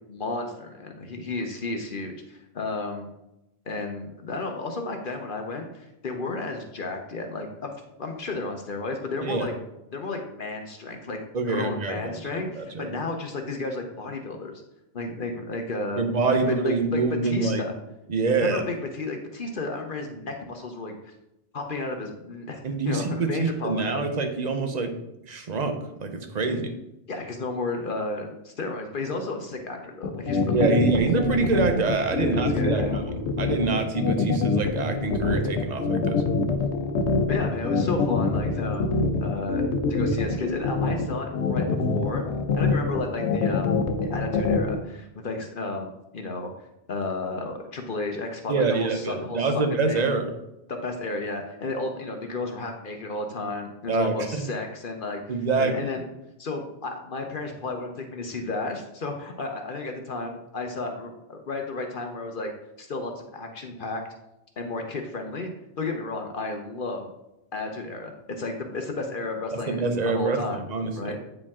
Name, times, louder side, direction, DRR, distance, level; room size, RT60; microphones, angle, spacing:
voice 1, 0.1-3.1 3.7-7.7 8.0-9.5 9.9-11.2 11.5-14.6 14.9-16.0 16.3-17.7 18.4-21.1 21.5-24.0 26.5-26.6 27.1-30.8 32.2-33.0 37.3-38.9 39.2-42.2 42.6-46.5 46.9-50.1 50.7-55.2 55.6-56.0 56.4-62.5 62.8-64.0 64.6-65.5 65.8-67.1 67.5-70.7 70.9-71.2, left 3 dB, 55° left, 4 dB, 0.9 m, -33 dB
voice 2, 11.3-12.0 12.3-13.0 16.0-17.7 18.1-18.6 22.6-24.9 25.2-26.7 30.5-33.0 33.4-36.2 48.5-50.3 53.9-54.4 55.3-55.9 69.5-71.2, right 3 dB, 40° right, 6 dB, 0.9 m, -26 dB
sound 1, 30.0-44.7, left 4 dB, 85° left, 1.0 m, -24 dB
8.7 x 5.0 x 3.6 m, 0.88 s
omnidirectional pair, 1.1 m